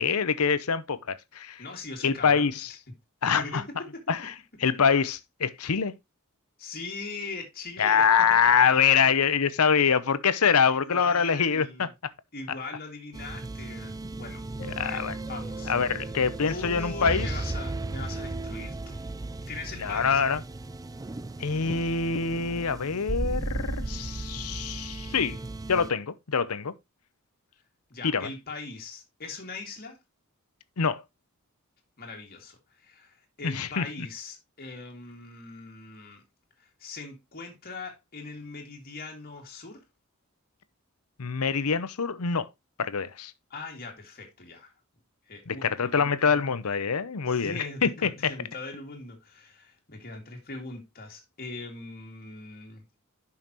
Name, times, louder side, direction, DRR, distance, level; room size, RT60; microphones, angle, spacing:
voice 1, 0.0-1.6 2.0-2.7 3.2-3.6 4.1-4.3 4.6-5.9 7.8-11.9 14.6-15.1 15.7-17.3 19.8-20.4 21.4-25.4 25.7-26.7 28.0-28.3 30.8-31.0 33.4-33.9 41.2-42.5 42.8-43.3 45.5-48.3, left 6 dB, 85° left, 0.8 m, -25 dB
voice 2, 1.6-2.5 3.3-3.6 3.9-4.0 6.6-9.2 9.7-9.9 10.7-11.9 12.3-14.4 14.8-15.7 16.4-19.0 19.3-20.2 27.9-30.0 32.0-36.2 36.6-39.8 43.5-44.7 45.3-46.5 47.3-52.8, left 3 dB, 45° left, 2.3 m, -41 dB
sound 1, 13.1-25.9, right 2 dB, 15° right, 0.4 m, -35 dB
11.0 x 5.7 x 3.0 m
head